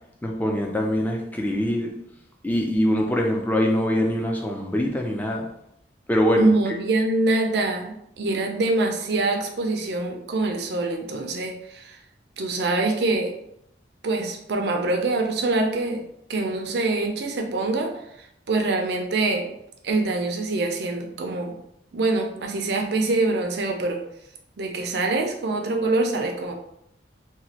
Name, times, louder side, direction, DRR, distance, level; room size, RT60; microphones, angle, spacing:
voice 1, 0.2-1.9 2.4-5.5 6.1-6.5, equal, 10° left, 1 dB, 0.3 m, -23 dB
voice 2, 6.4-12.0 12.4-13.3 14.0-16.0 16.3-17.9 18.2-19.5 19.8-21.6 21.9-24.0 24.6-26.5, right 2 dB, 60° right, 3 dB, 0.5 m, -24 dB
3.0 x 2.2 x 2.8 m, 0.78 s
head